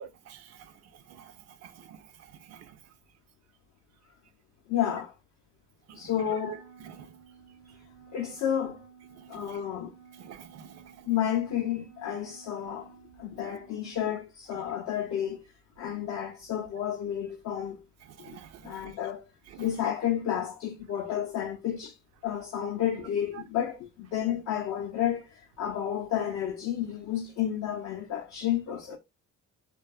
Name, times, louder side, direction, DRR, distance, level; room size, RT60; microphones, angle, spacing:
voice 1, 0.0-2.9 5.9-7.2 7.7-7.8 9.1-9.6 10.2-11.1 14.5-14.7 18.0-19.0 19.5-19.9 23.3-23.4, right 9 dB, 60° right, 0.5 m, -48 dB
voice 2, 4.7-5.1 5.9-6.6 8.1-8.8 9.3-9.9 11.1-15.5 15.8-17.8 18.3-18.4 18.6-19.3 19.6-22.0 22.2-29.0, left 10 dB, 65° left, 0.5 m, -31 dB
Wind instrument woodwind instrument, 6.1-14.2, right 7 dB, 85° right, 0.9 m, -54 dB
2.6 x 2.2 x 2.3 m
cardioid pair, 90°, 30 cm